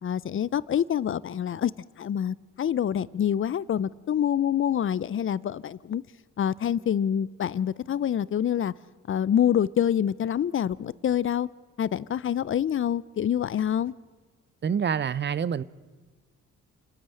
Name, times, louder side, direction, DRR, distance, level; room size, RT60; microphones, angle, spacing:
voice 1, 0.0-1.7 2.0-6.0 6.4-8.7 9.1-11.5 11.8-13.9, left 9 dB, 45° left, 0.6 m, -26 dB
voice 2, 14.6-15.6, right 7 dB, 35° right, 0.7 m, -26 dB
29.5 x 9.9 x 9.0 m
cardioid pair, 90°, 30 cm